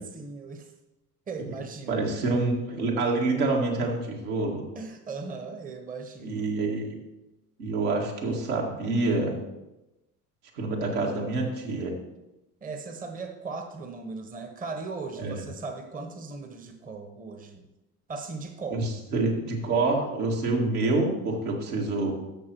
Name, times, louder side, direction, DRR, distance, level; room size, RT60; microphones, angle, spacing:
voice 1, 0.1-0.7 1.3-2.1 4.7-6.5 12.6-17.7 18.1-18.9, right 4 dB, 15° right, 6 dB, 0.9 m, -38 dB
voice 2, 1.9-4.7 6.2-6.9 7.6-9.4 10.5-12.0 15.2-15.4 18.7-22.1, right 3 dB, 70° right, -1 dB, 2.1 m, -27 dB
13.5 x 6.1 x 3.0 m, 0.98 s
figure-of-eight pair, 65°, 47 cm